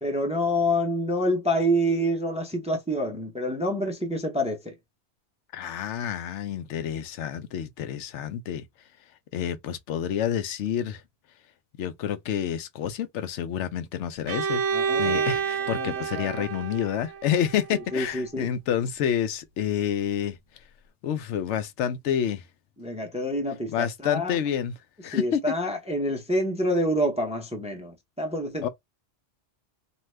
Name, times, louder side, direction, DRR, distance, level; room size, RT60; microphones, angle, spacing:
voice 1, 0.0-4.7 14.7-16.5 17.9-18.5 22.8-24.4 25.1-28.7, equal, 10° right, 0.5 m, -27 dB
voice 2, 5.5-8.6 9.3-11.0 11.8-14.6 15.0-20.4 21.0-22.4 23.7-24.7 25.0-25.5 28.6-28.7, left 9 dB, 85° left, 0.9 m, -28 dB
Bowed string instrument, 14.3-18.1, right 6 dB, 80° right, 0.9 m, -29 dB
2.7 x 2.3 x 3.2 m
omnidirectional pair, 1.2 m